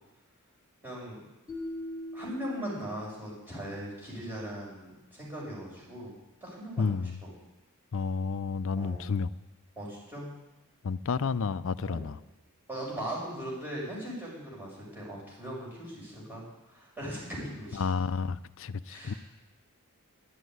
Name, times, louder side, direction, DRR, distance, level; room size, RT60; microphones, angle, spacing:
voice 1, 0.8-1.2 2.1-6.1 6.4-6.9 7.2-7.3 8.8-9.1 9.8-10.3 11.8-12.1 12.7-16.4 16.7-17.8 18.9-19.2, equal, 10° right, -6 dB, 6.2 m, -39 dB
sound 1, 1.5-3.6, left 1 dB, 15° left, 3.2 m, -41 dB
voice 2, 6.8-7.2 7.9-9.3 10.8-12.2 17.7-19.1, left 5 dB, 60° left, 15 dB, 0.5 m, -31 dB
12.0 x 8.3 x 9.4 m, 1.0 s
head